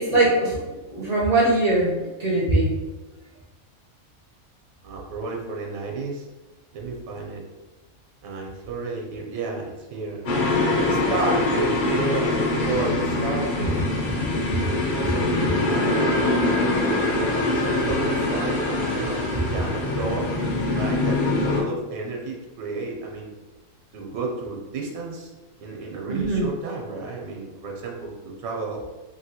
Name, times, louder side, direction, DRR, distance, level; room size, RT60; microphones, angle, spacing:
voice 1, 0.0-2.8 14.5-14.6 26.1-26.5, right 2 dB, 55° right, -5 dB, 0.4 m, -22 dB
voice 2, 4.8-6.3 6.7-7.4 8.2-10.2 10.5-13.8 14.5-17.0 17.4-20.3 20.7-23.3 23.9-25.3 25.6-28.8, right 3 dB, 90° right, -1 dB, 1.1 m, -32 dB
sound 1, 10.3-21.6, left 2 dB, 55° left, 0.6 m, -23 dB
3.0 x 2.6 x 2.8 m, 1.2 s
omnidirectional pair, 1.4 m